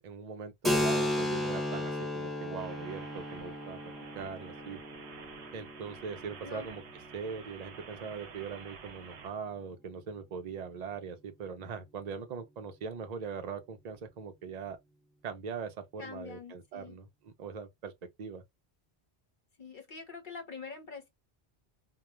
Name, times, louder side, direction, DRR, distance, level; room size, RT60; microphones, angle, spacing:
voice 1, 0.0-3.8 4.1-4.8 5.5-6.8 7.1-14.8 15.2-17.9 18.2-18.4, right 6 dB, 50° right, 0.6 m, -41 dB
Keyboard (musical), 0.6-8.0, left 1 dB, ahead, 0.3 m, -35 dB
sound 1, 2.6-9.3, right 6 dB, 80° right, 0.8 m, -50 dB
voice 2, 16.0-17.0 19.6-21.1, left 5 dB, 50° left, 0.8 m, -45 dB
2.3 x 2.2 x 2.9 m
omnidirectional pair, 1.1 m